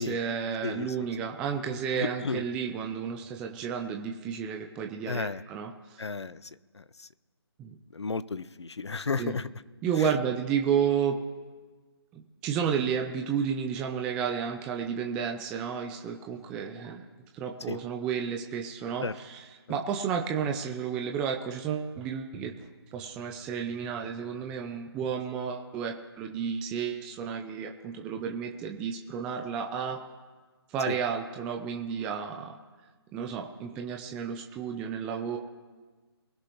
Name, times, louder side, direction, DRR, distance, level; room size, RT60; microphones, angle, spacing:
voice 1, 0.0-6.0 7.6-7.8 9.2-9.3 9.8-11.2 12.1-17.1 17.3-19.1 19.7-22.5 22.9-30.0 30.7-32.6 33.1-35.4, right 7 dB, 5° right, 3 dB, 0.3 m, -32 dB
voice 2, 0.6-1.1 1.7-2.4 5.1-5.4 6.0-7.1 7.9-9.5 10.0-10.1 17.7-17.8 19.0-19.1 19.7-19.8 30.9-31.0, left 4 dB, 85° left, 17 dB, 0.7 m, -34 dB
23.0 x 11.0 x 3.0 m, 1.4 s
figure-of-eight pair, 155°, 14 cm